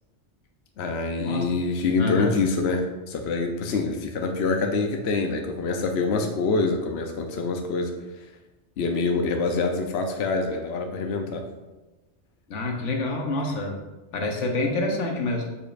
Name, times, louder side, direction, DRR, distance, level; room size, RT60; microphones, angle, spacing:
voice 1, 0.8-7.9 8.8-11.4, left 3 dB, 65° left, 4 dB, 0.9 m, -25 dB
voice 2, 2.0-2.3 12.5-13.8 14.1-15.5, left 2 dB, 90° left, 2 dB, 1.3 m, -27 dB
7.3 x 6.9 x 2.5 m, 1.1 s
omnidirectional pair, 1.2 m